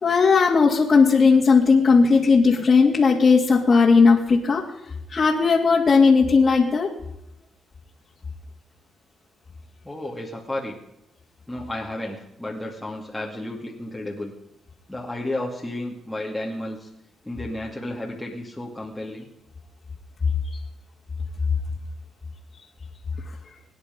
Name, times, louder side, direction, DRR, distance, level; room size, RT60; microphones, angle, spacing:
voice 1, 0.0-4.6 5.1-6.9, left 4 dB, 40° left, -3 dB, 2.5 m, -17 dB
voice 2, 9.8-10.8 11.5-14.3 14.9-16.9 17.2-19.3, left 1 dB, 5° left, -3 dB, 2.6 m, -32 dB
24.5 x 10.0 x 5.4 m, 0.84 s
cardioid pair, 90°, 0 cm